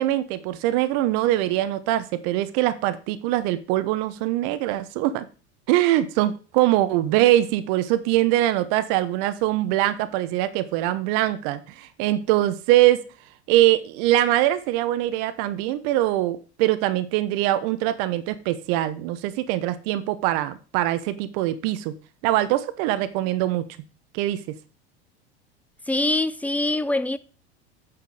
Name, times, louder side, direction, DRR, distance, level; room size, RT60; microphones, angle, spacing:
voice 1, 0.0-5.2 5.7-13.0 13.5-21.9 22.2-23.6 24.1-24.4, right 14 dB, 55° right, 1.0 m, -22 dB
voice 2, 25.9-27.2, left 2 dB, 5° left, 0.3 m, -23 dB
8.8 x 6.1 x 4.8 m
figure-of-eight pair, 80°, 33 cm